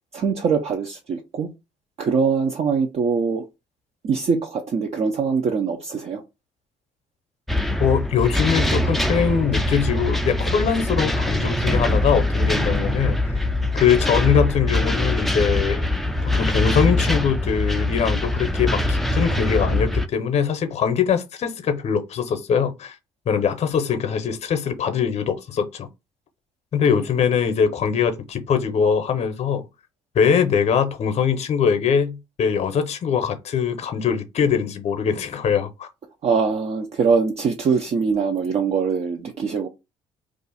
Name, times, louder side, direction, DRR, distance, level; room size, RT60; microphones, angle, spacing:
voice 1, 0.1-1.5 2.0-3.5 4.0-6.2 26.8-27.0 36.2-39.7, right 5 dB, 50° right, 0.6 m, -22 dB
sound 1, 7.5-20.1, left 1 dB, ahead, 0.4 m, -22 dB
voice 2, 7.8-13.3 13.7-15.9 16.3-22.9 23.3-25.9 26.7-29.6 30.1-35.9, left 7 dB, 50° left, 0.7 m, -22 dB
2.5 x 2.3 x 4.0 m
supercardioid pair, 60°, 14 cm